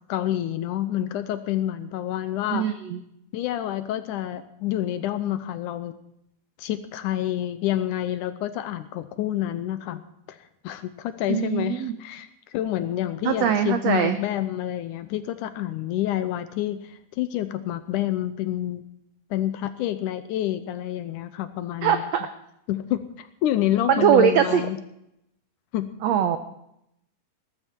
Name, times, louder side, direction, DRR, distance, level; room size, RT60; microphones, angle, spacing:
voice 1, 0.1-2.7 3.3-5.9 6.6-10.4 10.6-18.8 19.3-22.1 22.7-24.8 25.7-25.9, left 12 dB, 75° left, 12 dB, 2.0 m, -28 dB
voice 2, 2.5-3.0 11.3-11.9 13.2-14.2 21.8-22.3 23.9-24.7 26.0-26.4, right 9 dB, 85° right, 9 dB, 1.5 m, -21 dB
19.0 x 12.5 x 4.5 m, 0.79 s
omnidirectional pair, 4.0 m